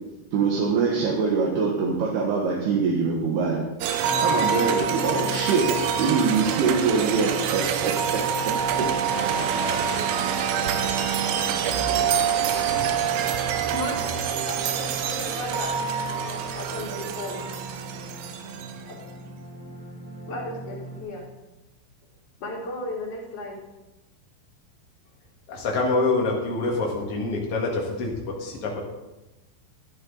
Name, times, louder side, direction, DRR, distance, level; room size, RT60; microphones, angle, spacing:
voice 1, 0.3-3.6 4.2-8.2 8.8-8.9, right 5 dB, 65° right, -2 dB, 2.9 m, -24 dB
sound 1, 3.8-18.9, right 7 dB, 80° right, 3.4 m, -26 dB
sound 2, 4.0-21.0, right 3 dB, 25° right, 3.0 m, -39 dB
voice 2, 13.4-15.8 16.5-17.5 18.9-19.0 20.3-21.3 22.4-23.6, left 2 dB, 35° left, -4 dB, 3.4 m, -35 dB
voice 3, 25.5-28.8, left 3 dB, 90° left, -2 dB, 1.3 m, -26 dB
13.5 x 11.5 x 3.9 m, 1.0 s
omnidirectional pair, 5.7 m